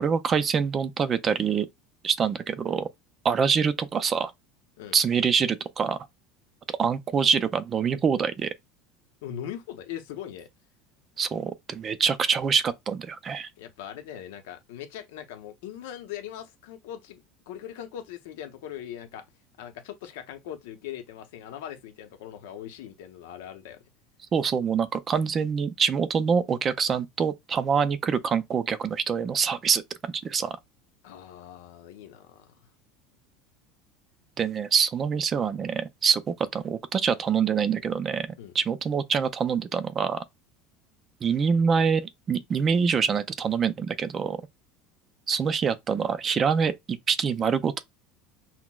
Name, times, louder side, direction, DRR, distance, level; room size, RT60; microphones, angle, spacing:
voice 1, 0.0-1.7 2.0-2.9 3.2-4.3 4.9-6.0 6.8-8.5 11.2-13.5 24.3-29.8 30.2-30.5 34.4-38.3 38.5-40.2 41.2-44.4 45.3-47.8, right 6 dB, 25° right, 0.4 m, -25 dB
voice 2, 9.2-10.5 13.6-19.2 19.6-23.8 31.0-32.6 38.4-38.5, left 10 dB, 85° left, 0.7 m, -40 dB
5.8 x 2.0 x 2.3 m
cardioid pair, 150°, 0 cm